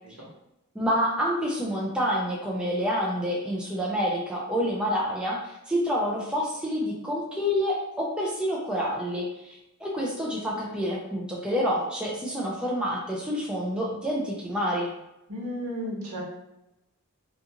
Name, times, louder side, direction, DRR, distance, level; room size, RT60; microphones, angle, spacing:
voice 1, 0.8-14.9, equal, 5° right, -4 dB, 0.3 m, -28 dB
voice 2, 15.3-16.2, equal, 70° right, -4 dB, 1.0 m, -33 dB
2.5 x 2.3 x 2.7 m, 0.89 s
head